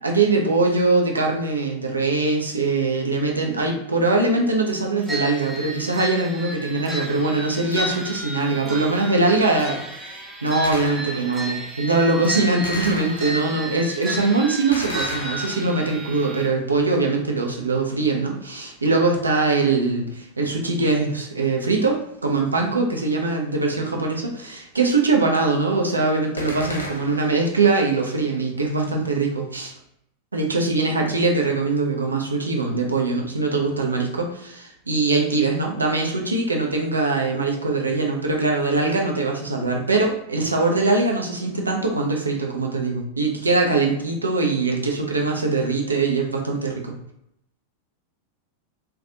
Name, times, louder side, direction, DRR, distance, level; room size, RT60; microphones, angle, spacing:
voice 1, 0.0-29.7 30.3-46.9, right 3 dB, 80° right, 1 dB, 0.5 m, -22 dB
sound 1, 5.1-16.5, right 1 dB, 15° right, 0.4 m, -33 dB
Gunshot gunfire, 10.6-11.4 12.6-13.6 14.7-16.0 26.4-27.4, left 2 dB, 75° left, 0.4 m, -34 dB
2.4 x 2.2 x 2.7 m, 0.77 s
figure-of-eight pair, 90°, 0 cm